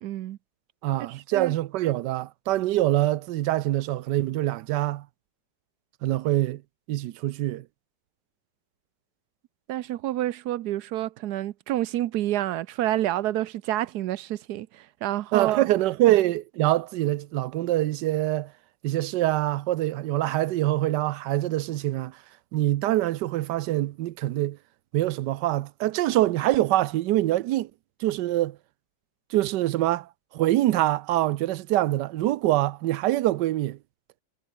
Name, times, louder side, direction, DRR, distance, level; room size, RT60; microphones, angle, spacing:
voice 1, 0.0-0.4 1.3-1.5 9.7-15.7, right 13 dB, 70° right, 1.2 m, -28 dB
voice 2, 0.8-5.1 6.0-6.6 6.9-7.7 15.3-18.5 18.8-22.2 22.5-24.6 24.9-27.7 28.0-28.6 29.3-33.8, right 15 dB, 90° right, 1.3 m, -24 dB
omnidirectional pair, 1.8 m